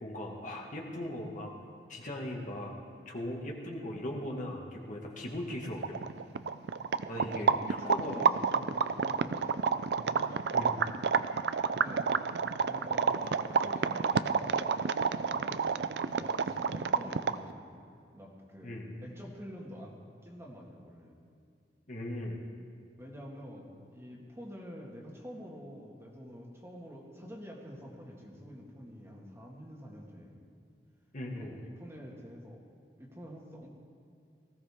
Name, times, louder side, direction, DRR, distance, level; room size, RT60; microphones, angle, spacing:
voice 1, 0.0-1.5 1.9-2.7 3.1-6.0 7.1-8.2 10.5-10.8 18.6-18.9 21.9-22.4 31.1-31.6, left 1 dB, 45° left, -1 dB, 1.9 m, -38 dB
sound 1, 5.5-5.6 5.8-17.5, right 5 dB, 70° right, 0.4 m, -29 dB
voice 2, 7.2-9.6 11.7-12.2 12.6-15.8 16.1-17.8 18.1-21.2 23.0-30.4 31.3-32.6 33.0-33.7, equal, 15° right, -2 dB, 1.8 m, -47 dB
19.0 x 15.5 x 3.6 m, 2.4 s
head